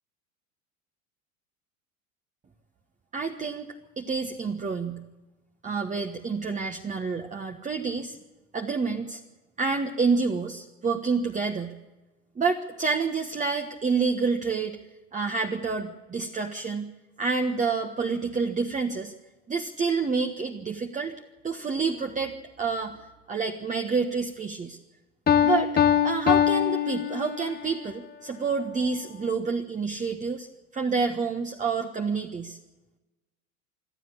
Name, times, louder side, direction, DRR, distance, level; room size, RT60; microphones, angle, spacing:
voice 1, 3.1-3.7 4.0-5.0 5.6-8.2 8.5-9.2 9.6-11.7 12.3-14.8 15.1-16.9 17.2-19.1 19.5-21.1 21.4-24.8 25.4-25.7 26.0-30.5 30.7-32.6, right 4 dB, 20° right, 4 dB, 1.4 m, -28 dB
Piano, 25.3-27.7, left 9 dB, 25° left, 1.2 m, -23 dB
26.5 x 12.5 x 8.6 m, 1.1 s
hypercardioid pair, 80°, 41 cm